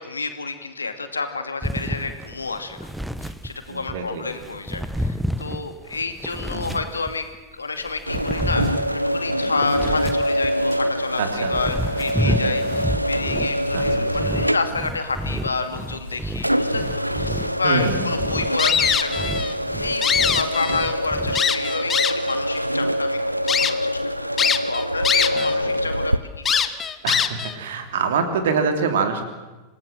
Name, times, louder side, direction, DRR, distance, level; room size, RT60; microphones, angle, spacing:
voice 1, 0.0-2.9 3.2-7.3 7.5-8.6 9.1-20.1 20.3-23.2 23.4-24.1 24.4-26.6, left 4 dB, 75° left, 8 dB, 2.3 m, -29 dB
sound 1, 1.6-4.0 4.4-7.4 7.8-10.8 11.3-21.4, equal, ahead, 1.0 m, -30 dB
voice 2, 3.7-4.2 6.5-6.8 11.2-11.5 12.2-12.6 13.7-14.1 17.6-18.1 25.3-25.7 27.0-29.2, right 5 dB, 60° right, 6 dB, 3.2 m, -25 dB
sound 2, 8.1-26.2, equal, 90° right, 0.7 m, -25 dB
sound 3, 18.6-19.5 19.9-20.9 21.3-22.3 22.9-23.0 23.5-23.7 24.4-25.5 25.8-25.9 26.4-27.5, left 7 dB, 20° left, 1.3 m, -22 dB
27.0 x 18.0 x 7.7 m, 1.2 s
figure-of-eight pair, 90°, 0 cm